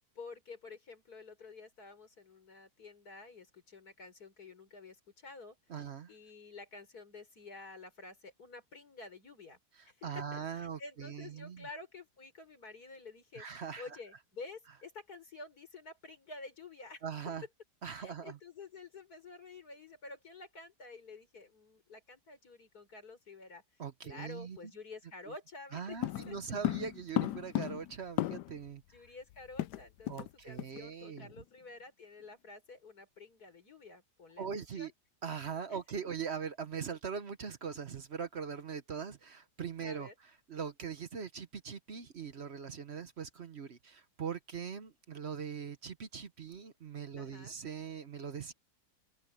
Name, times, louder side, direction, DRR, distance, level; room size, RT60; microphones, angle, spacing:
voice 1, 0.1-5.6 6.1-9.6 9.9-17.0 18.0-26.0 26.3-26.4 28.9-34.9 35.7-35.8 39.8-40.1 47.2-47.5, left 3 dB, 65° left, 5.1 m, -50 dB
voice 2, 5.7-6.1 10.0-11.7 13.4-13.8 17.0-17.4 17.8-18.4 23.8-24.6 25.7-28.8 30.1-31.3 34.4-34.9 35.2-40.1 40.5-48.5, right 6 dB, 45° right, 1.0 m, -41 dB
sound 1, 26.0-28.7 29.0-29.1 29.3-30.3 30.6-30.8 31.2-31.4, left 14 dB, 85° left, 1.2 m, -35 dB
omnidirectional pair, 1.8 m